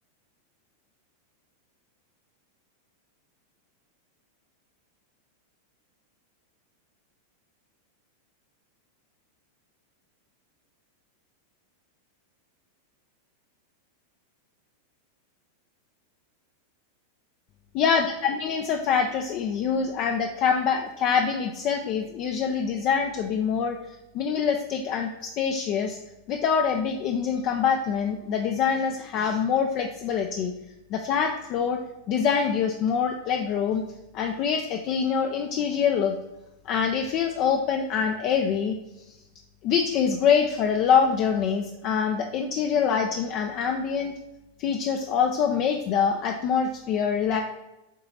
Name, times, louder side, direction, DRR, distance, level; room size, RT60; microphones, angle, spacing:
voice 1, 17.8-23.8 24.1-26.0 26.3-30.5 30.9-31.8 32.1-33.8 34.1-36.1 36.7-38.8 39.6-44.1 44.6-47.4, left 7 dB, 40° left, 4 dB, 0.5 m, -25 dB
7.3 x 3.9 x 4.2 m, 0.97 s
figure-of-eight pair, 90°, 0 cm